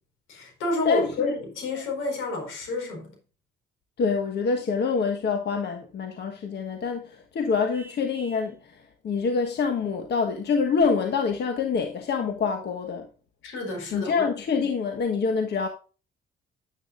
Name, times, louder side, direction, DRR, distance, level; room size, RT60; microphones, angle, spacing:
voice 1, 0.3-3.2 13.4-14.3, left 3 dB, 90° left, 4.5 m, -29 dB
voice 2, 0.8-1.3 4.0-13.1 13.9-15.7, left 5 dB, 60° left, 1.4 m, -26 dB
Vehicle horn car horn honking, 7.7-8.6, right 3 dB, 10° right, 2.0 m, -49 dB
9.8 x 9.0 x 2.5 m
cardioid pair, 90°, 20 cm